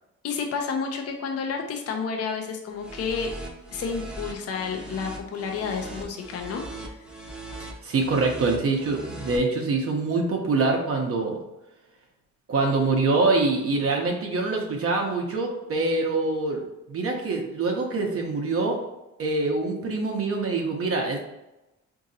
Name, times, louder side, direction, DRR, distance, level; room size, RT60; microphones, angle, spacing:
voice 1, 0.2-3.3 3.7-6.9, left 5 dB, 55° left, 3 dB, 0.6 m, -30 dB
sound 1, 2.7-9.4, right 1 dB, 5° right, 0.7 m, -40 dB
voice 2, 7.6-11.4 12.5-16.6 16.9-18.8 19.2-21.2, right 3 dB, 50° right, 0 dB, 0.7 m, -25 dB
3.8 x 2.7 x 2.6 m, 0.95 s
cardioid pair, 90°, 30 cm